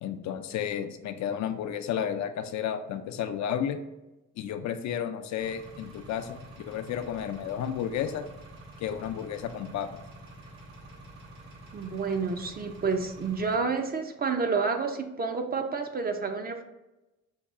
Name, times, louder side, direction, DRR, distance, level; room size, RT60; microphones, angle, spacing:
voice 1, 0.0-3.8 4.4-6.4 6.7-8.2 8.8-9.9, left 9 dB, 65° left, 8 dB, 0.5 m, -32 dB
Engine, 5.4-13.5, right 1 dB, 85° right, 1.3 m, -48 dB
voice 2, 11.7-16.6, right 4 dB, 30° right, 5 dB, 0.5 m, -29 dB
5.5 x 2.3 x 3.5 m, 1.0 s
cardioid pair, 90°, 30 cm